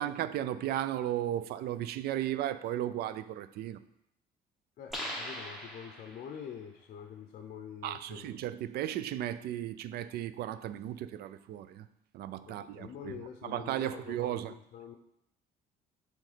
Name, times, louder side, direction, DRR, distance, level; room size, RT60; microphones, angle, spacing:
voice 1, 0.0-3.8 7.8-11.9 12.1-14.5, right 12 dB, 70° right, 0.4 m, -35 dB
voice 2, 4.8-8.4 12.5-14.9, left 7 dB, 55° left, 0.6 m, -46 dB
sound 1, 4.9-6.5, equal, ahead, 1.4 m, -40 dB
7.6 x 3.2 x 5.0 m
cardioid pair, 110°, 17 cm